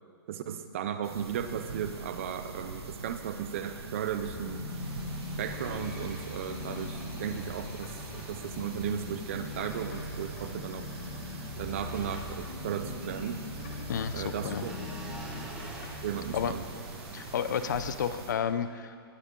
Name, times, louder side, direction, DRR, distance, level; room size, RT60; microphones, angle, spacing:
voice 1, 0.3-4.6 5.4-10.8 11.6-13.4 14.1-14.7 16.0-16.6, right 8 dB, 30° right, 9 dB, 0.6 m, -35 dB
sound 1, 1.0-18.3, right 4 dB, 85° right, 1.7 m, -43 dB
sound 2, 4.1-16.6, left 4 dB, 30° left, 1.4 m, -41 dB
sound 3, 4.7-18.1, right 2 dB, 5° right, 0.9 m, -49 dB
voice 2, 13.9-14.7 16.3-16.5 17.1-19.0, left 8 dB, 45° left, 12 dB, 0.5 m, -31 dB
19.0 x 9.8 x 3.8 m, 2.4 s
hypercardioid pair, 175°, 13 cm